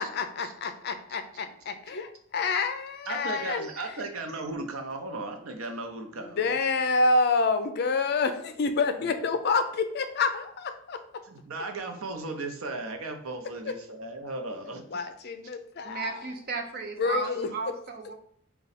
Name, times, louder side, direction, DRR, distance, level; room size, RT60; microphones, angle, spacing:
voice 1, 0.0-3.7 6.2-11.0 14.9-16.2 17.0-17.5, left 3 dB, 50° left, 8 dB, 0.5 m, -28 dB
voice 2, 3.1-6.5 9.0-9.1 11.2-14.8, right 3 dB, 80° right, 5 dB, 0.7 m, -36 dB
voice 3, 15.8-18.1, right 5 dB, 45° right, 4 dB, 0.6 m, -35 dB
4.9 x 2.3 x 4.1 m, 0.64 s
head